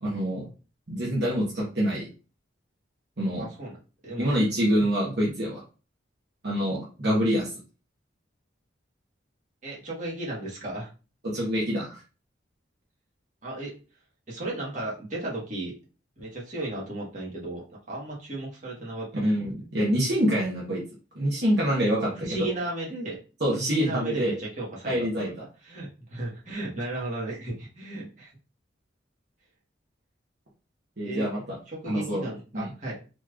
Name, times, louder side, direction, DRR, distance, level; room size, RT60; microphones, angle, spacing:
voice 1, 0.0-0.5 0.9-2.1 3.2-3.4 4.2-5.6 6.4-7.5 11.2-12.0 19.1-20.8 21.1-22.5 23.4-24.4 24.8-25.3 31.0-31.6 31.9-32.2 32.5-32.7, equal, 60° right, -4 dB, 1.2 m, -26 dB
voice 2, 3.4-4.3 9.6-10.9 13.4-13.8 14.3-15.7 16.2-19.3 22.0-23.2 23.5-25.3 25.6-28.3 31.0-31.3 31.7-33.0, right 2 dB, 40° right, -4 dB, 1.5 m, -35 dB
4.2 x 3.1 x 2.5 m, 0.34 s
head